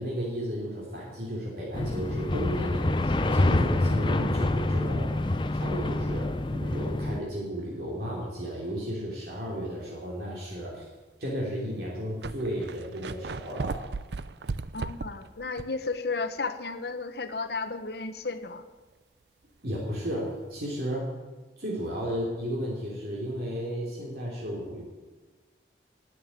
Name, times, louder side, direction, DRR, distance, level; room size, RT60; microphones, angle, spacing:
voice 1, 0.0-10.9 11.2-13.8 19.6-21.1 21.6-24.8, equal, 60° right, -4 dB, 3.4 m, -33 dB
sound 1, 1.7-7.2, left 2 dB, 25° left, 0.6 m, -26 dB
sound 2, 9.7-9.9 10.6-10.7 11.6-11.7 11.9-15.9 16.2-16.3 19.9-20.0, right 3 dB, 75° right, 0.6 m, -36 dB
voice 2, 14.7-18.7, left 4 dB, 65° left, 11 dB, 1.1 m, -33 dB
13.0 x 9.2 x 9.2 m, 1.3 s
head